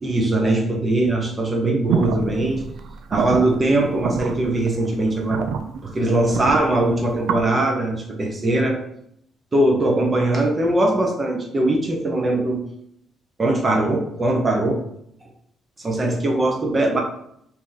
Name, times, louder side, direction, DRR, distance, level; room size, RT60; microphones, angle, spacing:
voice 1, 0.0-2.7 3.1-5.4 5.8-8.8 9.5-12.6 13.4-14.8 15.8-17.0, right 1 dB, 30° right, 1 dB, 1.0 m, -21 dB
sound 1, 1.9-7.4, right 6 dB, 80° right, 0.3 m, -28 dB
3.0 x 2.9 x 3.9 m, 0.72 s
cardioid pair, 90°, 0 cm